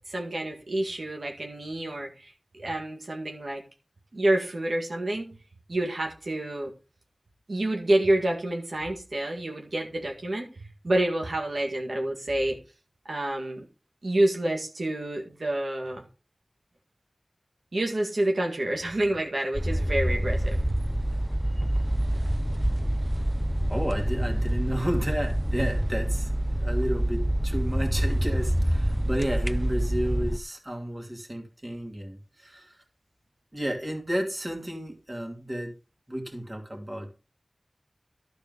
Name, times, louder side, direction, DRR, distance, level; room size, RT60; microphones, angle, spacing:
voice 1, 0.1-2.3 2.6-3.6 4.1-5.4 5.7-6.7 7.5-12.6 13.1-13.6 14.0-16.0 17.7-20.8, right 1 dB, 75° right, 2.0 m, -28 dB
sound 1, 19.5-30.4, right 1 dB, ahead, 0.5 m, -26 dB
voice 2, 23.7-26.3 26.6-32.8 33.5-35.7 36.1-37.1, equal, 30° right, 2.6 m, -32 dB
12.5 x 4.4 x 5.4 m
wide cardioid pair, 55°, 0 cm